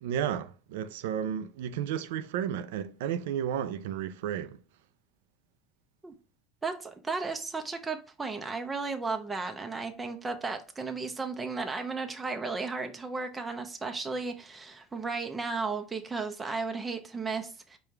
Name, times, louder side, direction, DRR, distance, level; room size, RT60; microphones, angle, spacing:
voice 1, 0.0-4.6, right 9 dB, 85° right, 0.4 m, -32 dB
voice 2, 6.6-17.8, right 4 dB, 20° right, 0.5 m, -34 dB
5.0 x 2.2 x 4.4 m
supercardioid pair, 105°, 0 cm